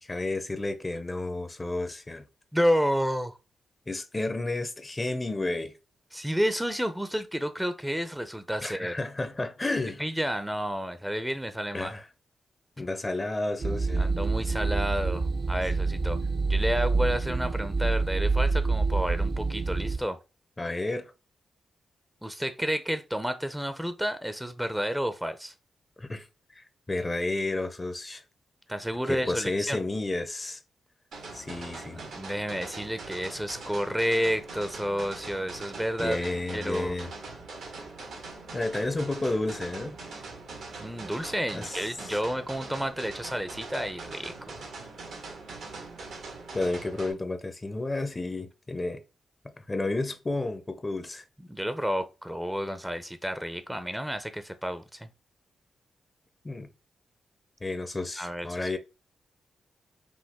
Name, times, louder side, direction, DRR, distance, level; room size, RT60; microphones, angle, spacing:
voice 1, 0.0-2.3 3.9-5.8 8.6-10.1 11.7-12.1 12.8-14.1 20.6-21.1 26.0-26.3 26.5-28.2 29.1-30.6 31.3-32.0 36.0-37.1 38.5-40.0 41.5-42.2 46.5-49.0 49.4-51.2 56.4-56.7 57.6-58.8, left 2 dB, 30° left, 0.8 m, -31 dB
voice 2, 2.5-3.3 6.1-8.9 10.0-11.9 14.0-16.2 16.5-20.2 22.2-25.5 28.7-29.8 31.9-36.3 36.5-36.9 40.8-44.7 51.5-55.1 58.2-58.8, equal, 5° right, 0.7 m, -30 dB
sound 1, 13.6-20.0, right 3 dB, 60° right, 1.0 m, -27 dB
sound 2, 31.1-47.1, right 3 dB, 80° right, 1.8 m, -42 dB
5.2 x 2.7 x 3.6 m
supercardioid pair, 45°, 0 cm